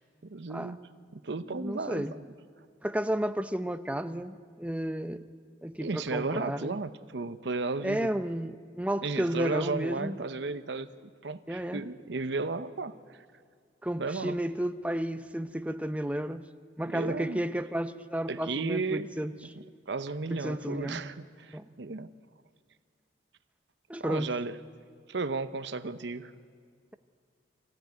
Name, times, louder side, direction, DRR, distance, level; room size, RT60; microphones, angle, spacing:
voice 1, 0.2-0.8 1.1-2.1 5.8-8.1 9.0-10.9 11.2-13.2 14.0-14.4 16.9-17.4 18.3-19.1 19.9-22.1 24.0-24.5 25.1-26.3, right 3 dB, 80° right, 12 dB, 0.8 m, -34 dB
voice 2, 1.5-2.1 2.8-5.3 5.6-6.8 7.8-10.2 11.5-11.8 13.8-16.5 16.8-19.3 20.3-21.0 21.5-21.6 23.9-24.3, right 1 dB, 10° right, 9 dB, 0.6 m, -32 dB
25.0 x 15.5 x 9.5 m, 2.1 s
head